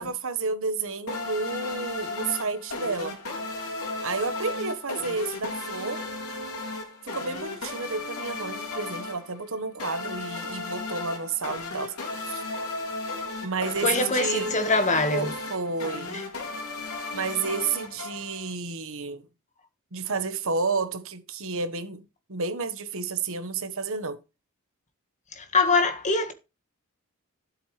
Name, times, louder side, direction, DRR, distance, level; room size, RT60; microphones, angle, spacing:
voice 1, 0.0-3.1 4.0-6.0 7.0-12.4 13.4-14.5 15.1-16.2 17.1-19.3 19.9-22.0 22.3-24.2, right 4 dB, 65° right, 1.3 m, -31 dB
sound 1, 1.1-18.5, left 3 dB, 70° left, 3.9 m, -35 dB
voice 2, 13.8-15.3 16.1-16.2 25.3-26.3, left 3 dB, 35° left, 1.7 m, -24 dB
12.5 x 7.8 x 3.3 m
head